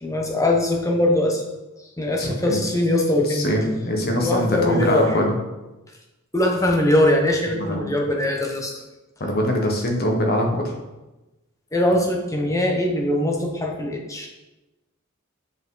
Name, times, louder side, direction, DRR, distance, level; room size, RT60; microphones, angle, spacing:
voice 1, 0.0-1.4 2.0-3.5 4.2-5.2 6.3-8.8 11.7-14.3, left 1 dB, 15° left, 1 dB, 1.0 m, -21 dB
voice 2, 2.2-2.6 3.2-5.3 7.6-7.8 9.2-10.8, equal, 45° left, 1 dB, 1.2 m, -23 dB
8.2 x 5.1 x 3.9 m, 1.1 s
head